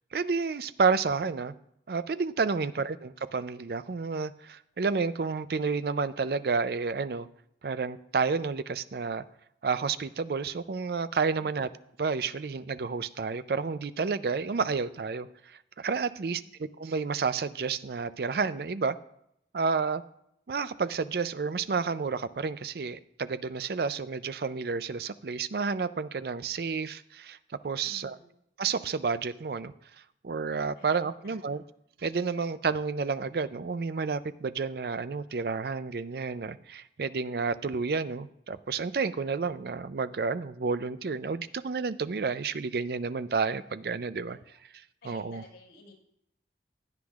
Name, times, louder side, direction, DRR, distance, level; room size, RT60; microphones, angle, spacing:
voice 1, 0.1-1.5 1.9-7.3 7.6-9.2 9.6-11.7 12.0-19.0 19.5-20.0 20.5-27.4 27.6-28.2 28.6-29.7 30.2-31.6 32.0-44.4 45.0-45.4, right 4 dB, 60° right, 14 dB, 0.4 m, -30 dB
voice 2, 27.8-28.3 30.8-31.6 44.3-44.6 45.0-45.9, left 2 dB, 80° left, -1 dB, 4.8 m, -54 dB
16.5 x 9.7 x 2.4 m, 0.77 s
head